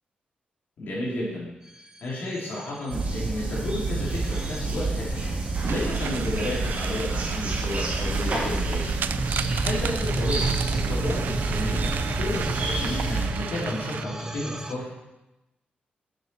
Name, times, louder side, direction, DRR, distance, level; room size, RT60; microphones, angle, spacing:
voice 1, 0.8-1.5 2.0-5.3 5.6-8.9 9.6-11.9 12.2-14.9, left 1 dB, 75° left, -7 dB, 3.8 m, -32 dB
sound 1, 1.7-14.7, right 2 dB, 15° right, 0.8 m, -35 dB
sound 2, 2.9-13.3, right 3 dB, 45° right, 2.7 m, -28 dB
sound 3, 5.7-14.0, right 8 dB, 75° right, 0.4 m, -35 dB
10.0 x 8.2 x 4.9 m, 0.99 s
wide cardioid pair, 135°, 3 cm